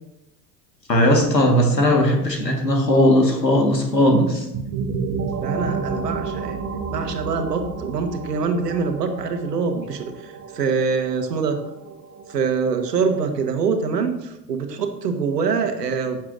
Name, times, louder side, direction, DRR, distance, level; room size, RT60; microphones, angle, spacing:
voice 1, 0.9-4.4, equal, 90° left, 3 dB, 1.7 m, -18 dB
sound 1, 4.5-14.1, right 5 dB, 35° right, 1.3 m, -32 dB
voice 2, 5.4-6.6 6.9-11.6 12.3-16.2, right 5 dB, 75° right, 6 dB, 1.4 m, -24 dB
15.5 x 7.3 x 2.6 m, 0.90 s
figure-of-eight pair, 70°, 48 cm